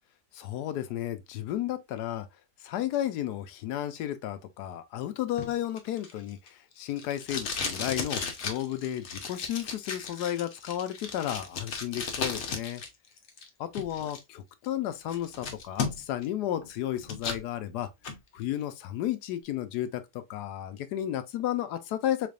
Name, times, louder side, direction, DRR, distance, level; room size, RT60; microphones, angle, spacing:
voice 1, 0.3-2.3 2.6-12.8 13.6-17.9 18.3-20.0 20.3-22.3, left 12 dB, 80° left, 1.2 m, -33 dB
Packing tape duct tape, 5.4-12.9 13.2-14.2 14.7-14.8 15.1-16.3 16.6-17.4 17.8-18.2, left 5 dB, 50° left, 1.0 m, -35 dB
4.0 x 3.4 x 2.4 m
omnidirectional pair, 1.7 m